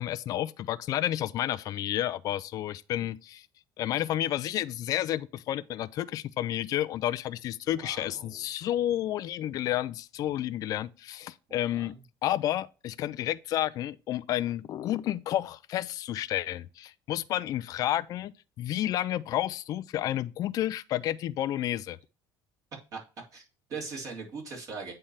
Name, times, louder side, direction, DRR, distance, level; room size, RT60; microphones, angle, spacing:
voice 1, 0.0-3.5 3.8-11.9 12.2-18.3 18.6-22.0, left 13 dB, 45° left, 0.4 m, -31 dB
voice 2, 7.6-8.5 11.5-12.0 22.9-23.0 23.3-24.9, right 4 dB, 45° right, 3.1 m, -41 dB
8.7 x 3.3 x 5.6 m
cardioid pair, 135°, 8 cm